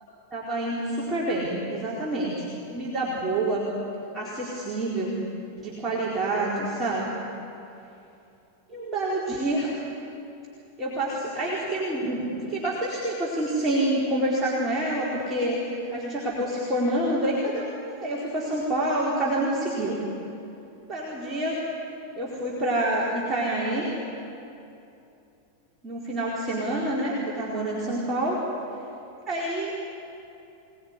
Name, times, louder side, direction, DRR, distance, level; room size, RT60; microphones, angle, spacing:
voice 1, 0.3-3.7 4.1-5.2 5.5-7.1 8.7-9.7 10.8-20.0 20.9-21.6 22.2-23.9 25.8-28.4 29.3-29.8, right 1 dB, 15° right, -6 dB, 4.5 m, -27 dB
25.0 x 19.5 x 9.9 m, 2.7 s
figure-of-eight pair, 90°, 0 cm